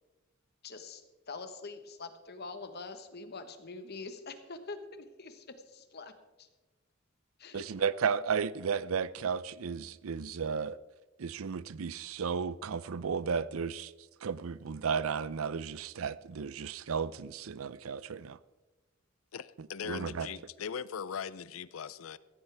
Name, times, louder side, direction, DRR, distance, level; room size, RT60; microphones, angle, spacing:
voice 1, 0.6-1.0 1.3-6.1 6.4-6.5 7.4-7.9, left 3 dB, 50° left, 1.3 m, -44 dB
voice 2, 7.5-10.8 11.2-13.9 14.2-18.4 19.6-20.3, right 6 dB, 85° right, 0.5 m, -34 dB
voice 3, 19.3-22.2, left 7 dB, 80° left, 0.5 m, -40 dB
15.5 x 14.5 x 3.5 m
head